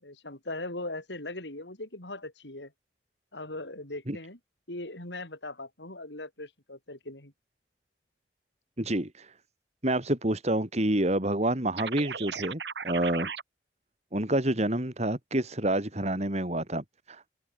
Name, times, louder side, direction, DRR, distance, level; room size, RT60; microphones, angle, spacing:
voice 1, 0.0-2.7 3.3-4.4 4.7-7.3, left 2 dB, 90° left, 6.6 m, -39 dB
voice 2, 8.8-9.3 9.8-13.3 14.1-17.3, right 1 dB, 40° right, 3.3 m, -28 dB
sound 1, 11.8-13.4, right 6 dB, 75° right, 2.2 m, -36 dB
open air
head